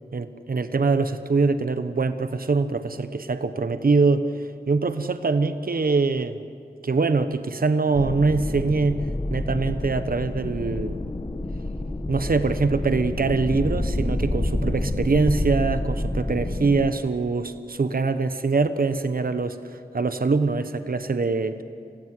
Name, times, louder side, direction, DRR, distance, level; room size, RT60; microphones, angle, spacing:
voice 1, 0.1-4.3 4.7-6.4 6.8-9.0 9.3-11.0 12.1-21.6, right 4 dB, 60° right, 10 dB, 1.1 m, -23 dB
sound 1, 7.9-16.9, left 1 dB, 30° left, 1.3 m, -28 dB
25.5 x 16.0 x 9.5 m, 2.5 s
wide cardioid pair, 50°, 17 cm